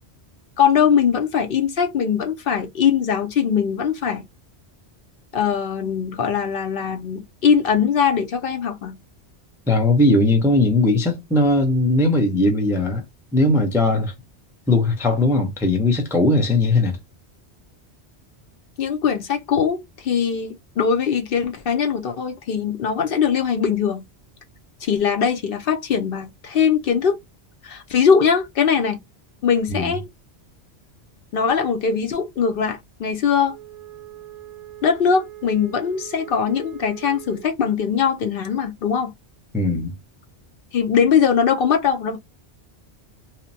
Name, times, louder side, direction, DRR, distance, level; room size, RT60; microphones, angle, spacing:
voice 1, 0.6-4.3 5.3-9.0 18.8-24.0 24.8-27.1 27.6-29.0 29.4-30.1 31.3-33.5 34.8-39.1 40.7-42.2, left 7 dB, 65° left, 0.7 m, -21 dB
voice 2, 9.7-13.0 13.3-14.1 14.7-17.0 29.7-29.9 39.5-39.9, left 2 dB, 5° right, 0.3 m, -19 dB
Wind instrument woodwind instrument, 33.5-37.6, right 14 dB, 60° right, 0.7 m, -41 dB
2.9 x 2.0 x 2.6 m
omnidirectional pair, 1.1 m